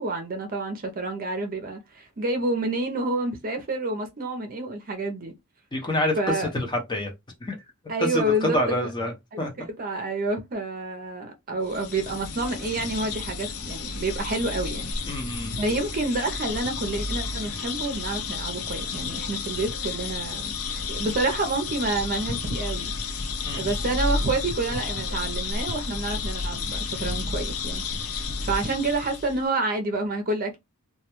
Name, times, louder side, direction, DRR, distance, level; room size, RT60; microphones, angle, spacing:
voice 1, 0.0-5.3 6.2-6.5 7.9-8.8 9.3-14.9 15.3-22.9 23.5-30.6, right 2 dB, 40° right, 0.5 m, -29 dB
voice 2, 5.7-6.2 6.5-7.1 7.4-7.6 8.0-9.1 9.4-9.5 15.1-15.6 23.4-23.8, left 1 dB, 20° left, 0.6 m, -27 dB
sound 1, 11.6-29.4, left 4 dB, 70° left, 0.5 m, -31 dB
2.3 x 2.1 x 2.9 m
head